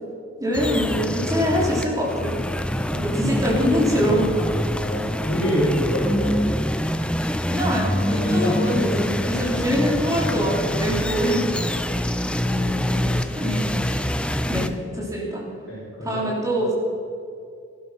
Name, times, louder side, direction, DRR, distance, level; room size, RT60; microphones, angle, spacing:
voice 1, 0.4-2.4 3.0-4.5 7.5-11.4 13.4-13.8 14.4-15.4 16.0-16.7, equal, 15° right, -4 dB, 3.5 m, -24 dB
sound 1, 0.5-14.7, equal, 5° left, 0.5 m, -25 dB
voice 2, 2.9-3.4 4.8-6.3 8.2-8.6 9.5-9.7 12.0-13.4 15.7-16.2, equal, 65° left, -9 dB, 4.2 m, -28 dB
15.0 x 12.0 x 5.9 m, 2.4 s
head